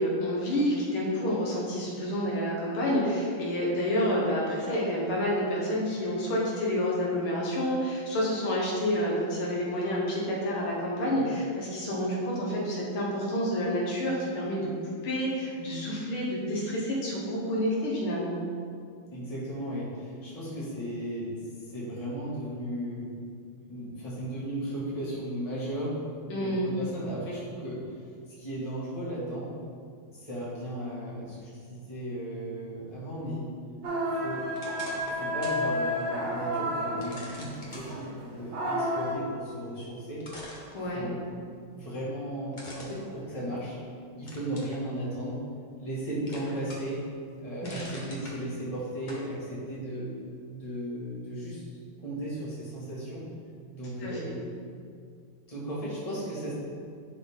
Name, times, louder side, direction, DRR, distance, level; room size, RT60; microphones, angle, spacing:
voice 1, 0.0-18.3 26.3-26.7 40.7-41.1 47.6-48.0 54.0-54.4, equal, 80° left, -4 dB, 2.2 m, -29 dB
voice 2, 19.1-23.1 23.7-26.0 26.4-29.5 30.1-33.5 34.1-34.5 35.0-40.3 40.9-41.2 41.7-43.8 44.1-45.4 45.8-47.0 47.4-50.1 50.5-51.6 52.0-53.2 53.7-54.3 55.5-56.5, right 1 dB, 15° left, -8 dB, 1.8 m, -36 dB
sound 1, 33.8-39.1, equal, 70° right, 2.1 m, -31 dB
sound 2, 34.6-35.6 36.1-36.2 37.0-37.9 39.7-39.8 40.2-41.3 42.5-43.8 44.3-44.8 45.3-46.0 46.3-47.0 47.3-48.4 49.1-49.3, left 1 dB, 35° left, 0.8 m, -44 dB
10.5 x 4.0 x 3.7 m, 2.2 s
omnidirectional pair, 2.3 m